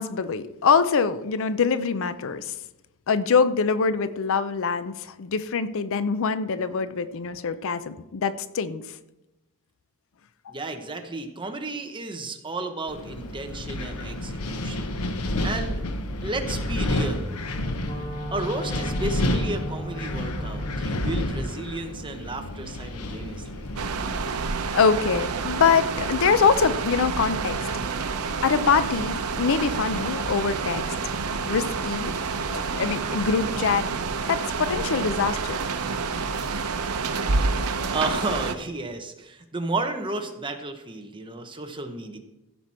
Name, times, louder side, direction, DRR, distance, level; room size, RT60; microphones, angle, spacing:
voice 1, 0.0-2.5 3.1-8.8 24.7-27.6 28.4-30.9 31.4-32.1 32.5-33.9 34.3-35.6, left 5 dB, 65° left, 13 dB, 0.5 m, -24 dB
voice 2, 10.5-15.0 15.4-15.8 16.2-17.4 18.3-23.7 37.9-42.2, right 2 dB, 20° right, 5 dB, 1.1 m, -33 dB
Wind, 12.9-24.4, left 1 dB, 85° left, 1.0 m, -30 dB
Wind instrument woodwind instrument, 17.4-21.5, right 1 dB, 25° left, 2.5 m, -37 dB
sound 1, 23.8-38.5, right 4 dB, 85° right, 0.8 m, -28 dB
15.5 x 6.1 x 4.3 m, 0.96 s
head